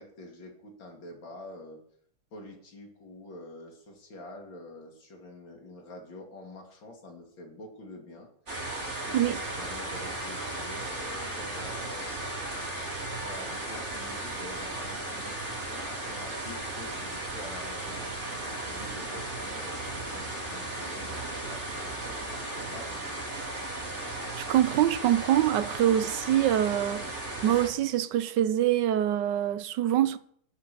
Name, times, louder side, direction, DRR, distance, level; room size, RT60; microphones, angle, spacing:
voice 1, 0.0-1.8 2.3-8.3 8.9-12.1 12.9-18.1 18.4-23.2 23.7-24.0, left 2 dB, 90° left, 3.3 m, -47 dB
sound 1, 8.5-27.7, right 2 dB, 35° right, 3.8 m, -36 dB
voice 2, 24.1-30.2, right 11 dB, 75° right, 1.2 m, -25 dB
13.5 x 6.7 x 6.7 m
omnidirectional pair, 2.0 m